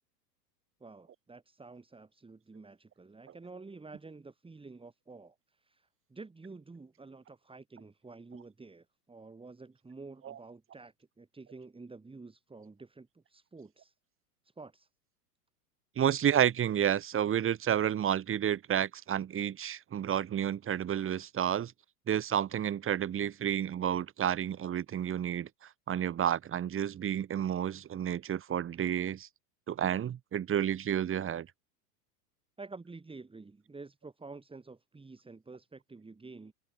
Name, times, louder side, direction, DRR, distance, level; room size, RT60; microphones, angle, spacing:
voice 1, 0.8-5.4 5.6-13.9 14.6-14.9 32.6-36.5, right 3 dB, 10° right, 6.7 m, -49 dB
voice 2, 16.0-21.7 22.1-25.5 25.9-29.3 29.7-31.5, right 9 dB, 25° right, 2.9 m, -30 dB
hypercardioid pair, 110°, 48 cm